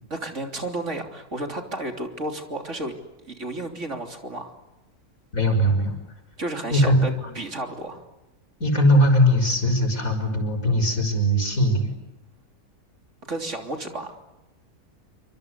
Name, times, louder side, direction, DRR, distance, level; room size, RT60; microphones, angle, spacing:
voice 1, 0.1-2.9 3.2-4.5 6.4-8.0 13.3-14.1, right 2 dB, 55° right, 4 dB, 3.6 m, -32 dB
voice 2, 5.3-6.0 6.7-7.0 8.6-11.9, equal, 65° left, 6 dB, 6.3 m, -20 dB
28.0 x 26.0 x 8.2 m, 0.97 s
omnidirectional pair, 1.5 m